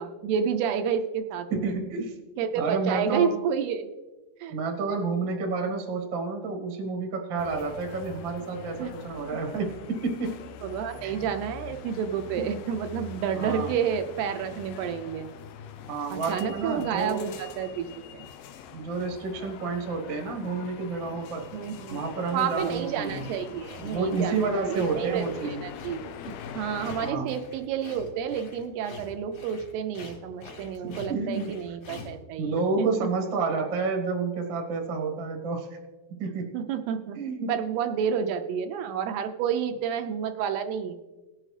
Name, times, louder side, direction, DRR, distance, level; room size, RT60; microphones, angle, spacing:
voice 1, 0.0-1.7 2.4-3.9 4.4-4.6 8.8-8.9 10.6-15.3 16.1-17.9 18.1-18.2 21.5-22.0 22.3-32.9 36.5-37.2 37.5-41.0, right 8 dB, 80° right, 6 dB, 2.5 m, -30 dB
voice 2, 1.5-2.1 2.5-3.4 4.5-10.4 11.0-11.1 13.3-13.7 15.9-17.3 18.7-21.5 21.9-23.3 23.8-25.7 26.8-27.4 30.8-31.5 32.4-35.7 36.2-36.6 37.1-37.5, right 4 dB, 55° right, 1 dB, 1.3 m, -30 dB
sound 1, 7.4-27.1, left 8 dB, 75° left, 2.4 m, -43 dB
sound 2, 21.5-22.1 22.5-32.2, left 5 dB, 60° left, 3.5 m, -46 dB
18.5 x 7.6 x 3.2 m, 1.2 s
omnidirectional pair, 4.8 m